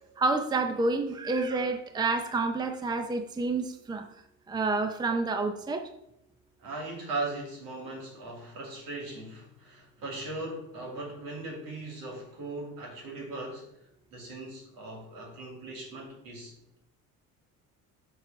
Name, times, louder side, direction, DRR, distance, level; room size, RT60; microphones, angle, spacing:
voice 1, 0.0-4.1 4.5-5.9, right 3 dB, 10° right, 7 dB, 0.6 m, -29 dB
voice 2, 6.6-13.7 14.1-16.5, right 2 dB, 75° right, -1 dB, 2.9 m, -38 dB
7.1 x 3.9 x 5.5 m, 0.77 s
cardioid pair, 105°, 34 cm